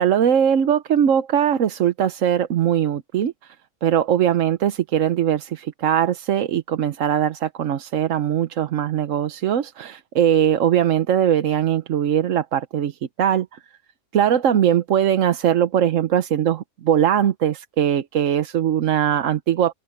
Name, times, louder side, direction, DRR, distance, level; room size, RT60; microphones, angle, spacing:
voice 1, 0.0-3.5 3.8-13.6 14.1-19.7, right 9 dB, 85° right, 1.2 m, -20 dB
omnidirectional pair, 1.3 m